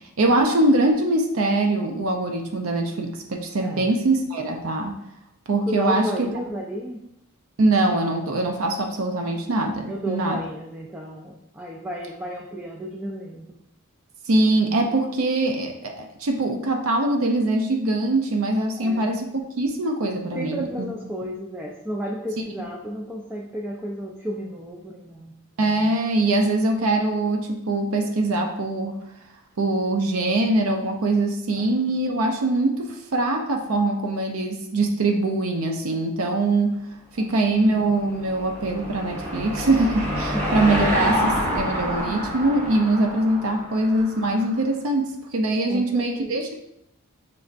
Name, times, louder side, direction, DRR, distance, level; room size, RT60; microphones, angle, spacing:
voice 1, 0.2-5.0 5.5-6.1 7.6-10.4 14.3-20.9 25.6-29.0 29.6-36.8 37.2-46.5, right 2 dB, 70° right, 3 dB, 0.5 m, -23 dB
voice 2, 5.7-7.0 9.9-13.6 18.8-19.1 20.3-25.3 31.5-31.8 37.2-37.5 40.3-40.4 45.7-46.3, equal, 10° right, -1 dB, 0.3 m, -33 dB
Car passing by / Engine, 37.6-44.4, equal, 30° right, 1.5 m, -27 dB
5.2 x 3.3 x 2.4 m, 0.81 s
head